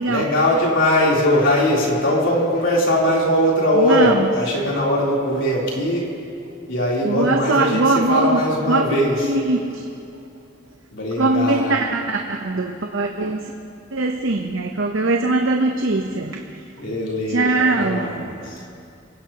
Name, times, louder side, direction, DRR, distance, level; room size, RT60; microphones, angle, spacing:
voice 1, 0.1-6.1 6.7-9.2 10.9-11.8 16.8-18.2 18.4-18.6, left 1 dB, 75° left, -4 dB, 3.5 m, -20 dB
voice 2, 3.7-4.3 7.0-8.4 8.7-8.9 9.2-9.8 11.2-13.5 13.9-16.6 17.3-18.3, right 2 dB, 80° right, 3 dB, 0.8 m, -21 dB
25.0 x 16.5 x 3.0 m, 2.5 s
head